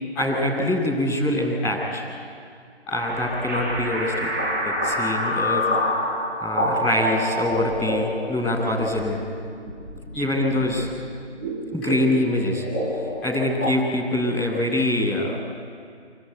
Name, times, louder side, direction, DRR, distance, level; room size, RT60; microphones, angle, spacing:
voice 1, 0.1-2.0 2.9-4.3 4.6-5.6 6.4-9.2 10.1-10.9 11.7-12.6 13.2-15.3, left 1 dB, 5° left, -11 dB, 2.6 m, -24 dB
sound 1, 3.0-13.7, equal, 15° right, 5.0 m, -28 dB
27.0 x 19.5 x 9.7 m, 2.3 s
figure-of-eight pair, 175°, 36 cm